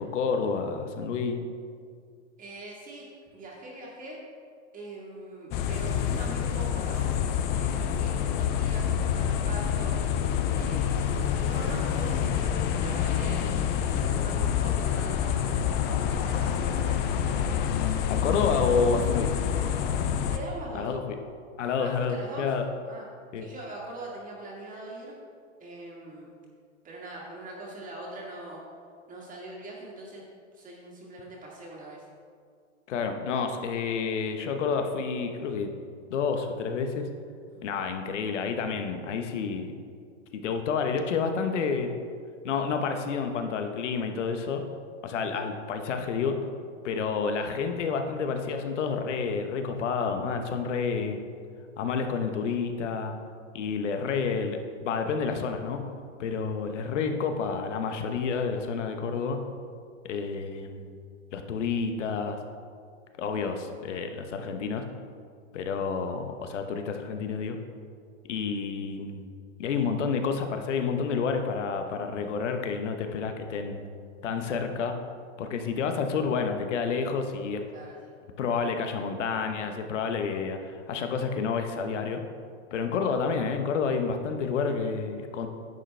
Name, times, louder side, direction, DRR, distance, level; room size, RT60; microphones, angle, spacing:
voice 1, 0.0-1.4 18.1-19.3 20.7-21.2 21.6-22.6 23.3-23.4 32.9-35.7 36.1-37.1 37.6-39.7 40.3-41.9 42.4-44.6 45.0-46.4 46.8-51.2 51.8-53.1 53.5-55.8 56.2-59.4 60.0-60.9 61.3-62.4 63.2-64.8 65.5-67.6 68.2-69.3 69.6-73.8 74.2-74.9 75.4-77.6 78.4-82.2 82.7-85.5, left 5 dB, 75° left, 6 dB, 1.1 m, -29 dB
voice 2, 2.4-3.1 3.3-4.2 4.7-7.1 7.5-9.9 10.5-11.1 11.4-13.5 13.8-17.0 20.3-20.9 21.8-22.5 22.9-23.0 23.4-25.1 25.6-26.3 26.8-28.6 29.1-30.2 30.5-32.1 37.5-37.7 63.2-63.7 77.7-78.1, right 2 dB, 20° right, -3 dB, 1.9 m, -42 dB
sound 1, 5.5-20.4, left 8 dB, 30° left, 0.5 m, -27 dB
11.0 x 7.9 x 3.3 m, 2.2 s
hypercardioid pair, 125°, 36 cm